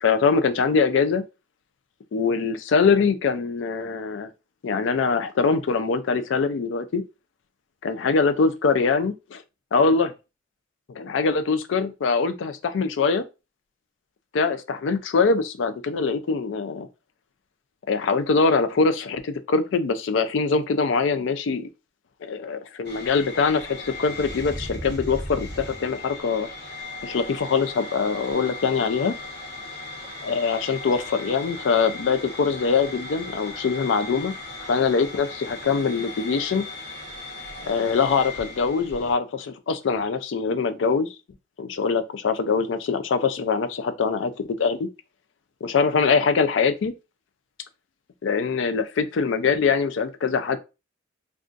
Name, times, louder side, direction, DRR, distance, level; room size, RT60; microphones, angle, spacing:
voice 1, 0.0-1.2 2.1-4.3 4.6-7.0 7.8-9.4 9.7-10.1 10.9-13.2 14.3-16.9 17.9-21.7 22.2-26.5 27.0-29.2 30.2-34.3 34.6-36.7 37.6-41.1 41.6-44.3 44.6-44.9 45.6-46.9 48.2-50.6, left 5 dB, 75° left, 0.4 m, -23 dB
sound 1, 22.8-39.1, left 2 dB, 55° left, 0.9 m, -37 dB
2.4 x 2.4 x 3.7 m
head